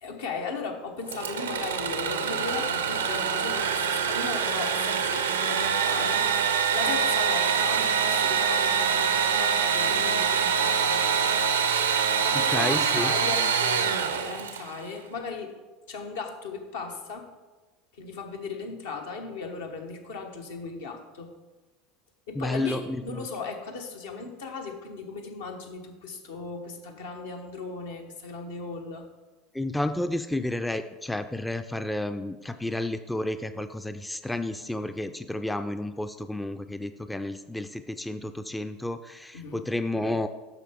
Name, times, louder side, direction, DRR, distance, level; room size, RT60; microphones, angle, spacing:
voice 1, 0.0-6.2 6.7-11.3 12.2-15.5 15.9-17.3 17.9-21.3 22.3-29.1 39.3-39.6, left 4 dB, 70° left, 2 dB, 1.1 m, -37 dB
Engine / Sawing, 1.1-14.8, right 7 dB, 80° right, 0.5 m, -25 dB
voice 2, 12.3-13.1 22.4-23.3 29.5-40.3, left 1 dB, 5° left, 9 dB, 0.4 m, -31 dB
8.0 x 5.9 x 3.6 m, 1.2 s
figure-of-eight pair, 75°, 0 cm